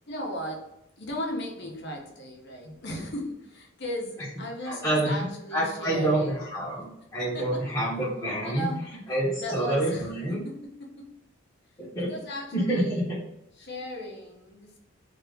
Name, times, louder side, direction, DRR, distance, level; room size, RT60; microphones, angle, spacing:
voice 1, 0.1-0.6 1.0-6.4 7.2-7.7 8.4-8.8 9.4-11.2 12.0-13.0 13.6-14.8, equal, 55° left, 0 dB, 0.8 m, -36 dB
voice 2, 4.6-5.2 5.5-8.7 9.1-10.4 11.8-12.1 12.5-13.1, right 1 dB, 15° left, -9 dB, 0.9 m, -27 dB
2.8 x 2.5 x 3.4 m, 0.83 s
head